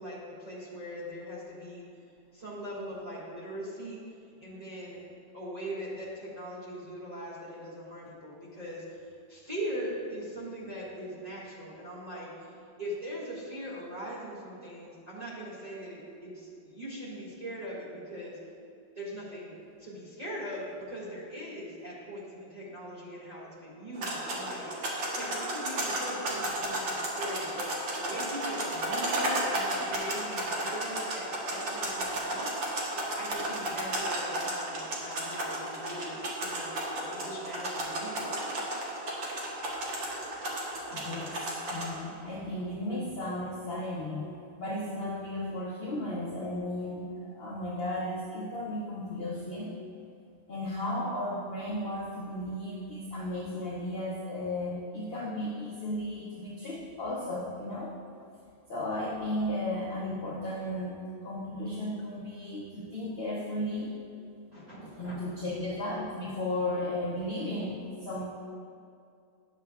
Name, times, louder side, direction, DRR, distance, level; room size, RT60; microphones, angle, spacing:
voice 1, 0.0-1.8 2.3-4.0 4.4-5.0 5.3-18.4 19.0-19.5 19.8-27.7 28.0-32.6 33.2-38.4 64.5-65.2, equal, 20° right, -8 dB, 1.8 m, -41 dB
sound 1, 24.0-41.9, right 1 dB, 80° right, 1.8 m, -33 dB
voice 2, 40.9-49.8 50.5-57.9 58.7-63.9 64.9-68.3, left 1 dB, 50° left, -4 dB, 0.7 m, -35 dB
11.0 x 6.7 x 2.3 m, 2.4 s
omnidirectional pair, 2.0 m